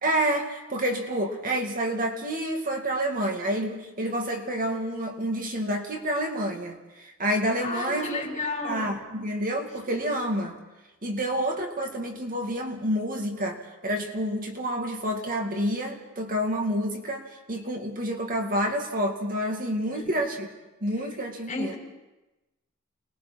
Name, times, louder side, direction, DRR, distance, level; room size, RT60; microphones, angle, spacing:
voice 1, 0.0-8.3 8.6-10.5 11.0-20.5 20.8-21.7, right 1 dB, 45° right, 2 dB, 2.2 m, -28 dB
voice 2, 7.6-8.9 19.9-20.1 21.5-21.8, left 3 dB, 40° left, -1 dB, 5.4 m, -32 dB
29.5 x 21.0 x 4.4 m, 1.0 s
head